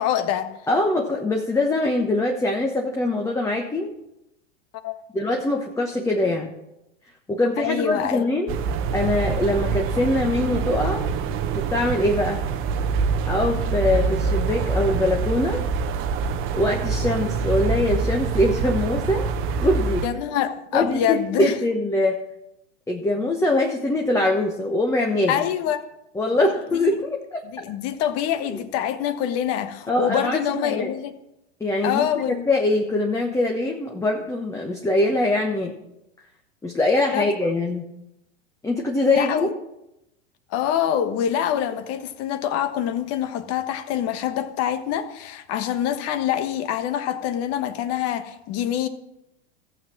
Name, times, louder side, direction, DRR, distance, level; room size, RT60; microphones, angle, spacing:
voice 1, 0.0-0.5 4.8-5.0 7.6-8.2 20.0-21.5 25.3-25.8 26.7-27.0 27.5-31.1 31.8-32.5 37.1-37.3 39.2-39.5 40.5-48.9, left 10 dB, 40° left, 1.2 m, -25 dB
voice 2, 0.7-3.9 5.1-6.6 7.3-8.6 8.9-11.1 11.5-12.4 13.3-15.6 16.5-20.0 20.7-22.2 22.9-25.4 26.1-27.4 29.9-30.9 31.6-32.1 32.5-35.7 36.6-37.8 38.6-39.5, left 2 dB, 10° left, 1.1 m, -23 dB
sound 1, 8.5-20.1, right 5 dB, 35° right, 1.0 m, -25 dB
14.5 x 7.5 x 6.0 m
hypercardioid pair, 115°, 36 cm